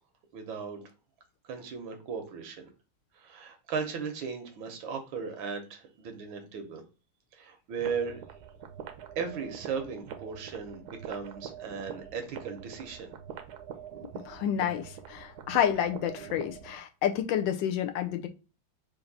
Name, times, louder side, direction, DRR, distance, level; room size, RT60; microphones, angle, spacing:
voice 1, 0.3-0.8 1.4-2.7 3.1-6.8 7.3-8.2 9.1-13.1, right 6 dB, 85° right, 1.7 m, -37 dB
sound 1, 7.8-16.8, right 8 dB, 70° right, 1.0 m, -44 dB
voice 2, 14.3-18.3, left 10 dB, 80° left, 1.3 m, -29 dB
4.5 x 2.6 x 3.9 m
omnidirectional pair, 2.1 m